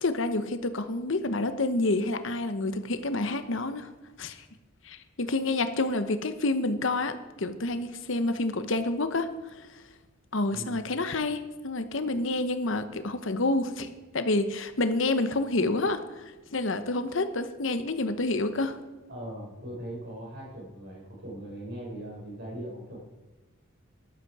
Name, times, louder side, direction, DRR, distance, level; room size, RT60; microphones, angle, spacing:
voice 1, 0.0-3.9 4.2-4.4 4.8-9.3 9.5-9.7 10.3-18.8, left 2 dB, 65° left, 10 dB, 1.0 m, -28 dB
voice 2, 19.1-23.0, right 1 dB, 50° right, -2 dB, 5.1 m, -40 dB
13.5 x 11.5 x 4.8 m, 1.1 s
head